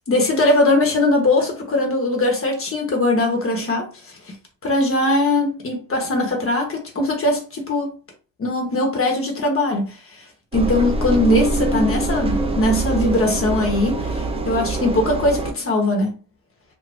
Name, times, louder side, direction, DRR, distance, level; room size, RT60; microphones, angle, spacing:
voice 1, 0.1-4.4 4.6-7.9 8.4-10.0 10.5-16.2, left 2 dB, 35° left, 1.3 m, -20 dB
Engine, 10.5-15.5, right 2 dB, 15° right, 0.5 m, -24 dB
2.7 x 2.4 x 3.5 m
cardioid pair, 85°, 37 cm